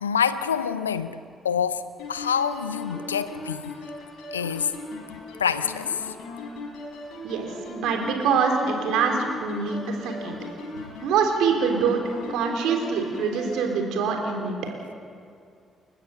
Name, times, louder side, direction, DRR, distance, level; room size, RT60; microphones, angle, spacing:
voice 1, 0.0-1.2 1.4-1.8 2.1-3.6 4.3-4.7 5.4-6.0, left 7 dB, 90° left, 14 dB, 0.6 m, -26 dB
sound 1, 2.0-13.7, left 2 dB, 70° left, 4.5 m, -38 dB
voice 2, 7.2-10.4 11.0-12.0 12.3-14.5, right 5 dB, 70° right, 3 dB, 3.6 m, -24 dB
29.5 x 15.0 x 7.0 m, 2.3 s
figure-of-eight pair, 40°, 0 cm